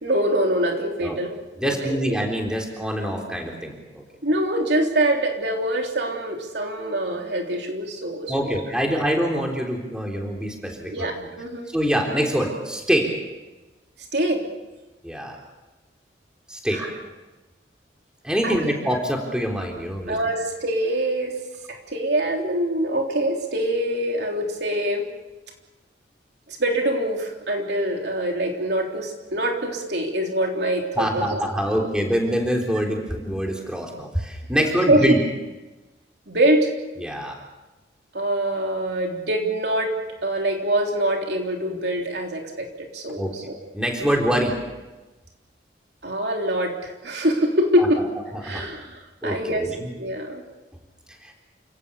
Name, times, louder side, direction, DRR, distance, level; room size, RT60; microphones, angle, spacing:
voice 1, 0.0-2.0 4.2-8.5 10.9-11.7 14.1-14.4 16.7-16.9 18.4-18.7 20.1-21.4 21.7-25.1 26.5-31.4 34.6-35.2 36.3-36.7 38.1-43.6 44.0-44.1 46.0-48.1 48.4-49.7 50.0-50.4, right 1 dB, 65° right, 1 dB, 3.5 m, -24 dB
voice 2, 1.6-4.0 8.3-11.1 11.7-13.1 15.0-15.4 16.5-16.9 18.2-20.2 31.0-35.2 37.0-37.4 43.2-43.3 43.7-44.6 47.8-47.9 48.3-48.7 49.2-49.9 51.2-51.3, equal, 5° right, 1 dB, 3.7 m, -25 dB
29.0 x 18.0 x 7.0 m, 1.1 s
head